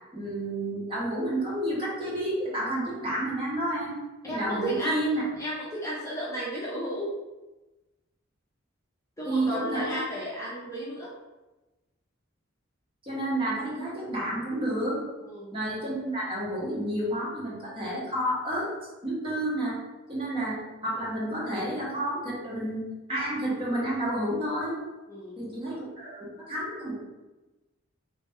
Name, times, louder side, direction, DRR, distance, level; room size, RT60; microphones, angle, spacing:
voice 1, 0.1-4.0 4.2-5.2 9.2-10.0 13.0-15.0 15.5-18.7 19.0-19.8 20.1-22.8 23.1-24.8 25.4-27.0, right 1 dB, 25° right, -7 dB, 1.5 m, -30 dB
voice 2, 4.2-7.2 9.2-11.1 15.2-15.5 25.1-25.5, right 1 dB, 15° left, -6 dB, 0.7 m, -33 dB
4.1 x 3.1 x 3.6 m, 1.1 s
head